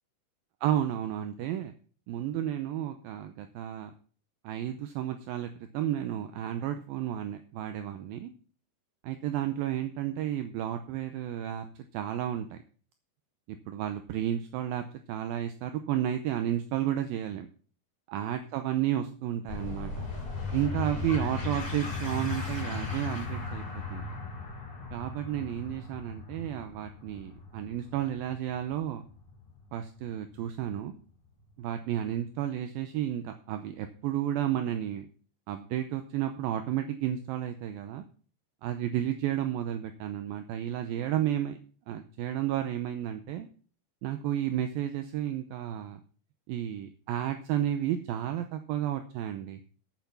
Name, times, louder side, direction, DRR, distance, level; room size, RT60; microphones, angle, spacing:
voice 1, 0.6-1.7 2.1-3.9 4.4-8.3 9.0-11.7 11.9-12.6 13.7-17.5 18.1-19.9 20.5-23.6 23.9-24.0 24.9-29.1 29.7-30.9 31.6-35.1 35.5-38.0 38.6-41.6 41.9-43.5 44.0-46.0 46.5-49.6, right 11 dB, 80° right, 8 dB, 2.2 m, -32 dB
sound 1, 19.5-30.6, left 3 dB, 20° left, 4.6 m, -37 dB
8.8 x 8.1 x 6.9 m, 0.42 s
omnidirectional pair, 4.9 m